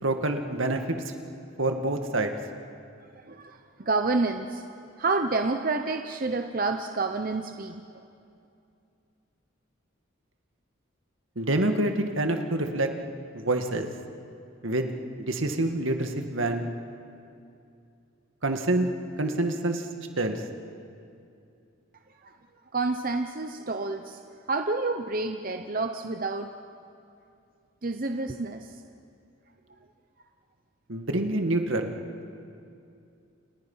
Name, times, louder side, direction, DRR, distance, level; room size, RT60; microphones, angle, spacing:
voice 1, 0.0-1.0 1.6-2.3 11.4-12.9 13.4-13.9 14.6-14.9 15.3-16.7 18.4-18.9 19.2-19.9 20.2-20.4 30.9-31.9, right 2 dB, 75° right, 5 dB, 2.0 m, -26 dB
voice 2, 3.2-4.6 5.0-8.0 22.2-22.3 22.7-24.2 24.5-26.5 27.8-28.7, right 3 dB, 45° right, 6 dB, 0.8 m, -29 dB
30.0 x 29.0 x 5.7 m, 2.5 s
head